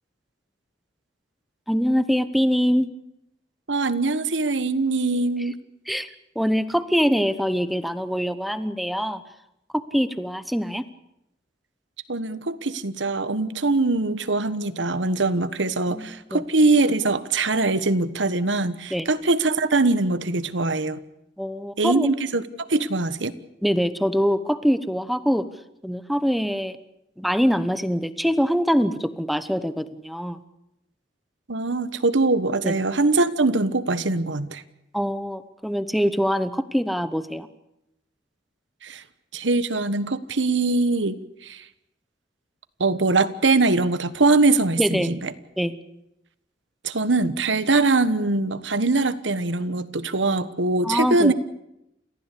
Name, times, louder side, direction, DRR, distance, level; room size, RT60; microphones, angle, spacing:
voice 1, 1.7-2.9 5.9-6.1 6.3-9.2 9.7-10.8 15.9-16.4 18.9-19.1 21.4-22.1 23.6-25.5 25.8-26.8 27.2-30.4 32.6-32.7 34.9-37.5 44.8-45.1 45.6-45.8 50.8-51.3, equal, ahead, 12 dB, 1.0 m, -23 dB
voice 2, 3.7-5.6 12.1-21.0 21.8-23.3 31.5-34.6 38.8-39.0 39.3-41.2 41.4-41.6 42.8-45.3 46.8-51.3, right 3 dB, 90° right, 13 dB, 1.3 m, -22 dB
29.0 x 15.0 x 8.5 m, 0.85 s
head